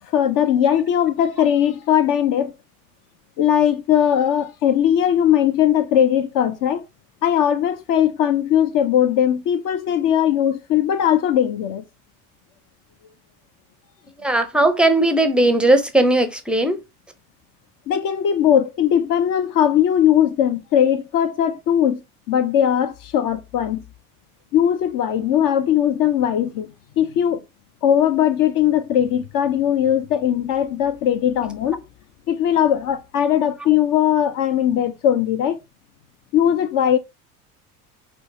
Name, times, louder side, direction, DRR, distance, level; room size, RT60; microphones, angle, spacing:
voice 1, 0.1-2.5 3.4-6.9 7.2-11.8 17.9-22.0 22.3-23.8 24.5-26.7 27.0-27.4 27.8-31.8 32.3-35.6 36.3-37.0, left 10 dB, 50° left, 0.5 m, -19 dB
voice 2, 14.2-16.8, right 1 dB, ahead, 0.5 m, -17 dB
4.3 x 2.1 x 2.7 m
hypercardioid pair, 65°, 45 cm